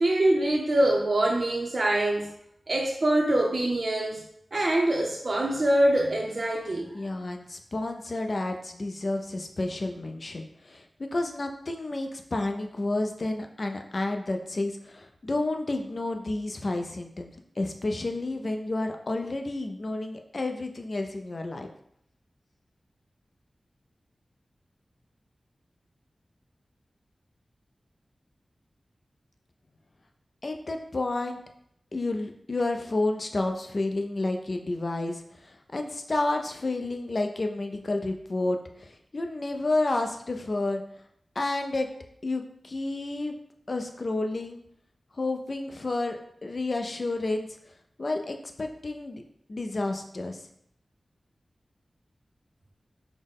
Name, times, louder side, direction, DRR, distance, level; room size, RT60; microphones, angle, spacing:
voice 1, 0.0-2.3 2.7-4.2 4.5-6.9, right 1 dB, 55° right, -1 dB, 0.5 m, -24 dB
voice 2, 6.9-17.3 17.6-21.7 30.4-31.4 31.9-40.8 41.4-41.9 42.2-43.3 43.7-44.6 45.1-47.5 48.0-49.2 49.5-50.4, left 2 dB, 50° left, 4 dB, 0.4 m, -30 dB
3.9 x 2.1 x 3.5 m, 0.72 s
wide cardioid pair, 65°, 0 cm